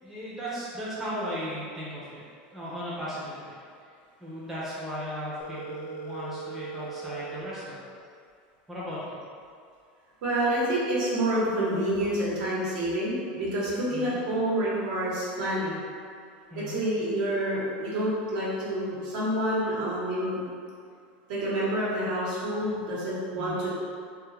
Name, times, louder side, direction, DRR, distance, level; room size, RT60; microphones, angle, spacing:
voice 1, 0.0-2.2 2.5-3.5 4.2-7.8 8.7-9.2 13.9-14.2 16.5-16.8 23.3-23.6, equal, 5° right, -9 dB, 0.6 m, -36 dB
Telephone, 5.4-7.4, right 5 dB, 40° left, 0.4 m, -39 dB
voice 2, 10.2-15.8 16.5-20.4 21.3-23.7, right 1 dB, 65° right, -7 dB, 1.0 m, -28 dB
2.7 x 2.4 x 3.1 m, 2.3 s
supercardioid pair, 145°, 5 cm